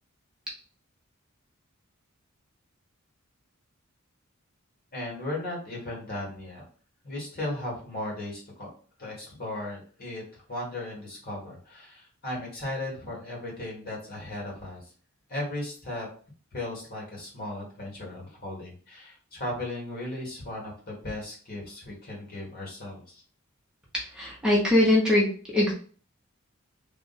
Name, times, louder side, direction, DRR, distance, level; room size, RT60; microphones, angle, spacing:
voice 1, 4.9-6.6 7.0-8.7 9.0-14.9 15.3-16.1 16.5-23.2, left 1 dB, 50° left, -2 dB, 1.7 m, -36 dB
voice 2, 24.1-25.7, left 1 dB, 5° right, -4 dB, 0.9 m, -22 dB
3.6 x 2.5 x 4.0 m, 0.42 s
head